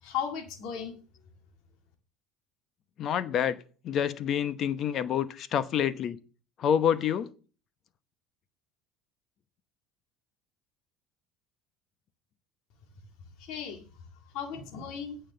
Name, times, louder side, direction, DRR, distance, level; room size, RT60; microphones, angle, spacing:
voice 1, 0.0-1.0 13.4-13.9 14.3-15.2, left 8 dB, 65° left, 2.0 m, -36 dB
voice 2, 3.0-6.2 6.6-7.3, left 9 dB, 50° left, 0.9 m, -28 dB
9.0 x 5.6 x 6.7 m
supercardioid pair, 95°, 0 cm